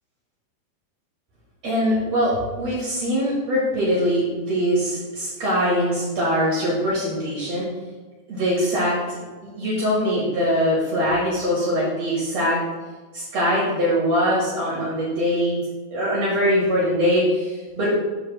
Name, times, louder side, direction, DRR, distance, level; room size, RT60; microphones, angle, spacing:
voice 1, 1.6-7.7 8.3-12.6 13.1-15.6 15.9-17.9, equal, 55° right, -6 dB, 2.1 m, -22 dB
5.9 x 4.6 x 6.3 m, 1.4 s
omnidirectional pair, 4.7 m